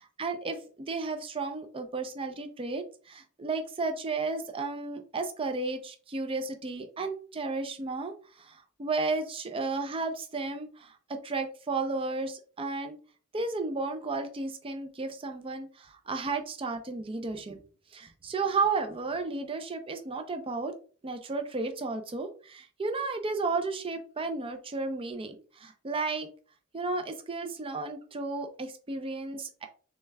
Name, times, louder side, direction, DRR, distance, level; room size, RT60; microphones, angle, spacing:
voice 1, 0.2-13.0 13.3-17.6 17.9-20.7 21.0-26.3 26.7-29.7, right 3 dB, 25° right, 6 dB, 0.4 m, -33 dB
6.7 x 3.2 x 2.2 m, 0.40 s
head